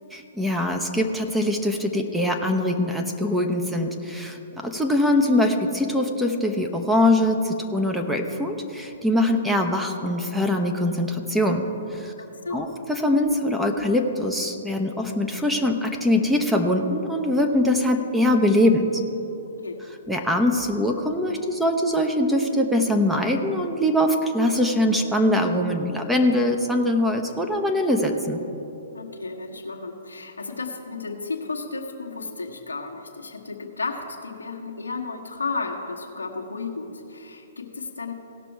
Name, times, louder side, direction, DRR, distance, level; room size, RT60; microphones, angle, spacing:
voice 1, 0.1-11.6 11.9-12.1 12.5-19.0 20.1-28.4, left 1 dB, 5° right, 3 dB, 0.8 m, -22 dB
voice 2, 28.9-38.1, left 4 dB, 85° left, 2 dB, 1.2 m, -33 dB
17.0 x 6.1 x 4.6 m, 3.0 s
figure-of-eight pair, 125°, 0 cm